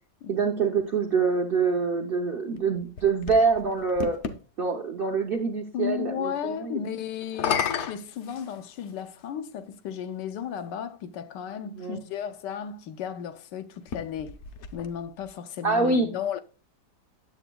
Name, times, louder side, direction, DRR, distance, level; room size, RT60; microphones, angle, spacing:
voice 1, 0.3-4.2 4.6-6.8 11.6-12.0 15.6-16.1, right 4 dB, 60° right, 0.6 m, -25 dB
sound 1, 2.6-4.4 7.2-9.0 9.9-10.0 13.8-15.3, left 7 dB, 65° left, 0.7 m, -33 dB
voice 2, 5.7-14.4 14.7-16.4, left 8 dB, 90° left, 1.3 m, -34 dB
8.9 x 7.5 x 2.2 m
omnidirectional pair, 1.8 m